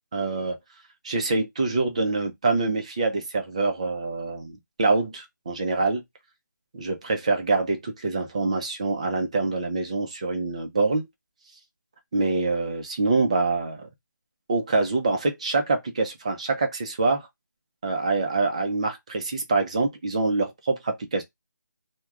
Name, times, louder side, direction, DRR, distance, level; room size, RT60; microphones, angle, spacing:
voice 1, 0.1-0.6 1.0-6.0 6.7-11.1 12.1-13.9 14.5-17.2 17.8-21.2, right 3 dB, 20° right, 0.4 m, -25 dB
3.1 x 2.1 x 2.3 m
figure-of-eight pair, 165°, 10 cm